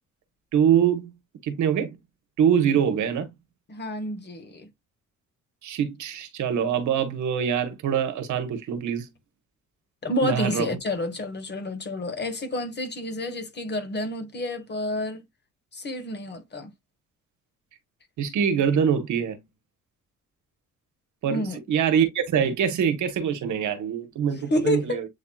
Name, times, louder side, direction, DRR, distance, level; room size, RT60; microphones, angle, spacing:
voice 1, 0.5-1.1 1.4-2.0 2.4-3.3 5.6-9.1 10.2-10.8 18.2-19.4 21.2-25.1, right 8 dB, 75° right, 1.2 m, -24 dB
voice 2, 3.7-4.7 10.0-15.2 15.7-16.7 21.3-21.6 24.5-25.0, left 1 dB, 35° left, 1.4 m, -29 dB
8.0 x 2.7 x 2.3 m
cardioid pair, 90°, 30 cm